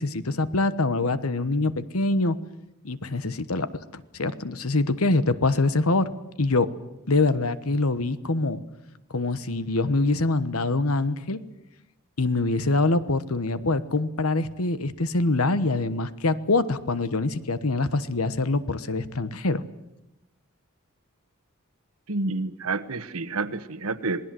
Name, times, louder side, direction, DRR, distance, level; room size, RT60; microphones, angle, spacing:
voice 1, 0.0-2.4 2.8-6.1 6.4-6.7 7.1-8.6 9.1-11.4 12.2-19.6, left 2 dB, 85° left, 14 dB, 1.2 m, -24 dB
voice 2, 22.1-24.2, right 3 dB, 85° right, 11 dB, 1.3 m, -29 dB
27.5 x 19.5 x 7.8 m, 0.90 s
head